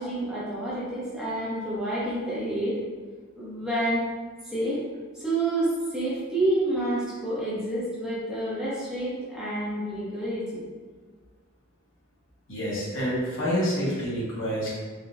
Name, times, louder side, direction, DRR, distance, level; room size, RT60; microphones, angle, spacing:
voice 1, 0.0-2.8 3.4-4.1 4.4-4.8 5.1-10.6, right 1 dB, 5° right, -10 dB, 0.7 m, -28 dB
voice 2, 12.5-14.7, equal, 70° left, -7 dB, 1.0 m, -28 dB
4.1 x 2.1 x 2.4 m, 1.5 s
head